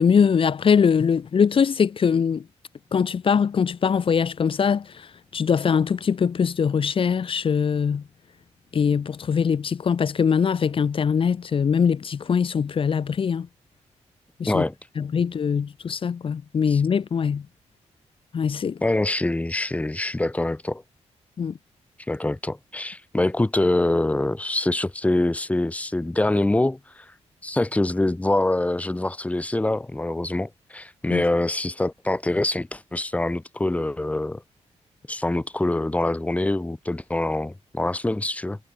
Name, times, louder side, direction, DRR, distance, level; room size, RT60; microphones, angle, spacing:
voice 1, 0.0-2.4 2.9-8.0 8.7-13.5 14.4-14.7 15.0-17.5 18.3-18.8 21.4-21.6 31.1-31.2, left 6 dB, 50° left, 4.2 m, -22 dB
voice 2, 14.4-14.7 16.7-16.8 18.8-20.8 22.1-27.1 27.4-34.4 35.1-38.6, left 2 dB, 10° left, 6.3 m, -25 dB
wide cardioid pair, 140°, 12 cm